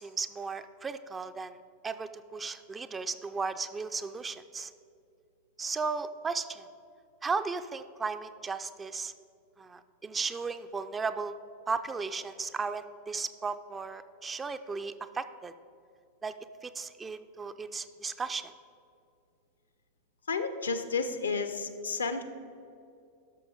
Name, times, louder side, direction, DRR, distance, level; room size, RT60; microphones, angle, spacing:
voice 1, 0.0-1.6 1.8-4.7 5.6-6.7 7.2-9.1 9.6-11.3 11.7-15.5 16.2-16.3 16.6-18.5, right 4 dB, 15° right, 11 dB, 0.4 m, -35 dB
voice 2, 20.3-22.2, left 4 dB, 75° left, 9 dB, 0.7 m, -31 dB
12.5 x 6.0 x 5.0 m, 2.4 s
figure-of-eight pair, 90°, 0 cm